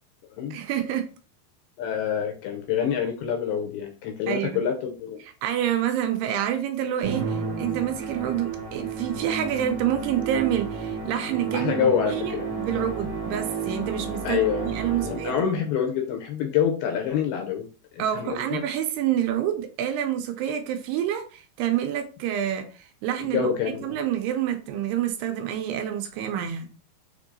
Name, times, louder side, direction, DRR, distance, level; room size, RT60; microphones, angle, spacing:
voice 1, 0.5-1.1 4.3-4.6 5.4-14.4 14.7-15.7 18.0-23.5 23.8-26.7, right 10 dB, 80° right, 2.6 m, -28 dB
voice 2, 1.8-5.2 11.5-12.8 14.2-14.7 15.0-17.7 17.9-18.6 23.2-24.0, left 8 dB, 80° left, 2.3 m, -27 dB
Musical instrument, 7.0-15.6, right 4 dB, 65° right, 2.4 m, -32 dB
6.6 x 2.7 x 2.6 m
omnidirectional pair, 4.8 m